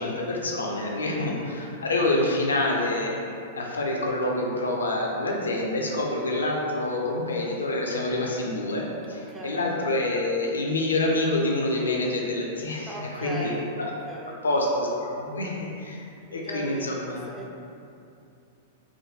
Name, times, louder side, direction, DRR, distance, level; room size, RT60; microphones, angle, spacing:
voice 1, 0.0-3.1 3.5-13.9 14.4-17.2, left 2 dB, 75° left, -2 dB, 0.4 m, -27 dB
voice 2, 0.8-1.2 9.1-9.6 12.9-14.4 16.3-17.6, right 1 dB, 10° right, -3 dB, 0.4 m, -39 dB
3.5 x 2.2 x 2.7 m, 2.6 s
figure-of-eight pair, 100°, 0 cm